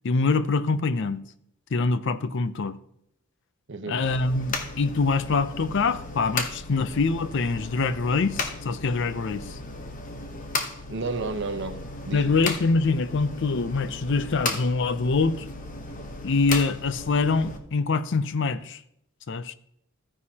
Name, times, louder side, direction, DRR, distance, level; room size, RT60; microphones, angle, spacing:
voice 1, 0.0-1.2 1.7-2.8 3.9-9.6 12.1-15.5 16.2-18.8 19.3-19.5, left 4 dB, 60° left, 0.5 m, -24 dB
voice 2, 3.7-4.0 10.9-12.4, right 3 dB, 55° right, 0.9 m, -32 dB
sound 1, 4.0-17.6, left 3 dB, 40° left, 1.0 m, -35 dB
13.5 x 9.5 x 2.9 m
head